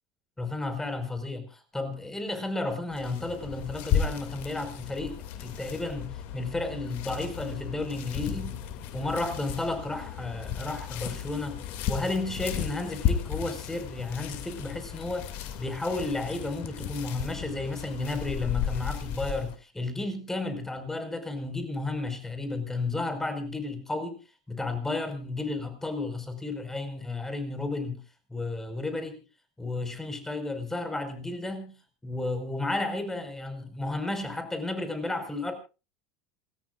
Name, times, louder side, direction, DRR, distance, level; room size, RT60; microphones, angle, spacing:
voice 1, 0.4-8.6 8.9-11.6 11.9-24.2 24.5-28.0 28.3-29.2 29.6-31.7 32.0-35.5, left 2 dB, 10° left, 9 dB, 5.1 m, -33 dB
sound 1, 2.9-19.6, left 9 dB, 60° left, 2.5 m, -34 dB
28.5 x 14.0 x 2.5 m, 0.32 s
hypercardioid pair, 85°, 4 cm